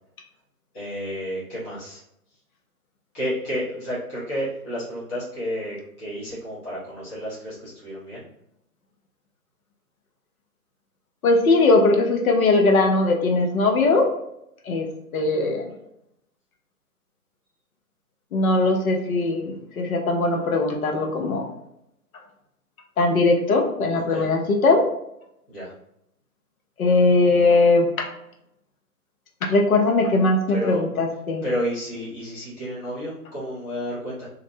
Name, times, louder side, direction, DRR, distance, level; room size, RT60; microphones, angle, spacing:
voice 1, 0.7-2.0 3.1-8.2 24.1-24.3 25.5-25.7 30.5-30.8 31.4-34.3, equal, 10° left, -11 dB, 0.5 m, -31 dB
voice 2, 11.2-14.1 14.6-14.9 15.1-15.7 18.3-21.5 23.0-24.8 26.8-28.1 29.4-31.4, left 2 dB, 65° left, 2 dB, 0.7 m, -20 dB
2.5 x 2.0 x 2.7 m, 0.78 s
hypercardioid pair, 135°, 46 cm